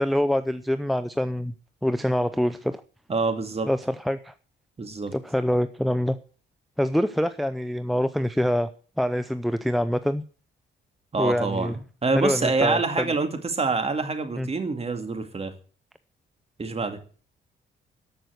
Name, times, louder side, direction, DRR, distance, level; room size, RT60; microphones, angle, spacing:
voice 1, 0.0-1.5 1.8-2.8 3.7-4.3 5.1-6.2 6.8-8.7 9.0-10.2 11.2-11.8 12.2-13.1 14.4-14.5, equal, ahead, 11 dB, 0.6 m, -25 dB
voice 2, 3.1-3.7 4.8-5.1 11.1-15.5 16.6-17.0, right 3 dB, 30° right, 7 dB, 2.3 m, -26 dB
13.5 x 6.1 x 7.9 m, 0.41 s
cardioid pair, 90°, 20 cm